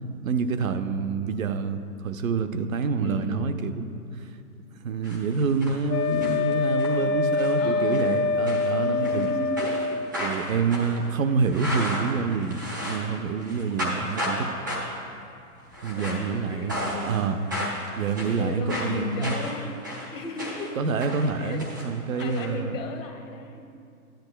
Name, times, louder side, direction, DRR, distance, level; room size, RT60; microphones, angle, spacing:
voice 1, 0.2-4.0 4.8-9.3 10.2-14.5 15.8-17.4 18.0-19.5 20.8-22.7, right 5 dB, 60° right, 8 dB, 0.7 m, -27 dB
voice 2, 3.0-3.5 7.0-7.1 7.6-10.0 15.9-17.3 17.6-17.7 18.3-20.7 21.2-23.6, left 3 dB, 55° left, 4 dB, 1.2 m, -35 dB
sound 1, 5.0-5.8 6.0-6.9 7.3-7.6 7.9-8.1 8.5-9.3 9.6-13.1 13.4-14.4 14.7-15.0 15.7-16.3 16.7-17.2 17.5-20.7 21.0-22.4, equal, 15° right, 0.4 m, -33 dB
Wind instrument woodwind instrument, 5.9-10.1, left 4 dB, 75° left, 0.5 m, -25 dB
12.5 x 10.5 x 2.2 m, 2.4 s
hypercardioid pair, 145°, 46 cm